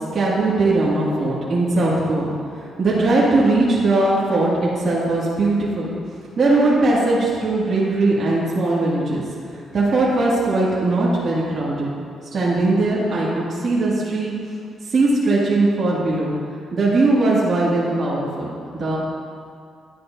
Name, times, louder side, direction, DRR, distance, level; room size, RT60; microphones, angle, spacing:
voice 1, 0.1-2.3 2.6-5.9 6.4-9.2 9.5-11.9 12.3-14.3 14.9-16.3 16.7-19.0, right 2 dB, 45° right, -7 dB, 1.9 m, -19 dB
11.0 x 9.3 x 2.6 m, 2.3 s
cardioid pair, 115°, 0 cm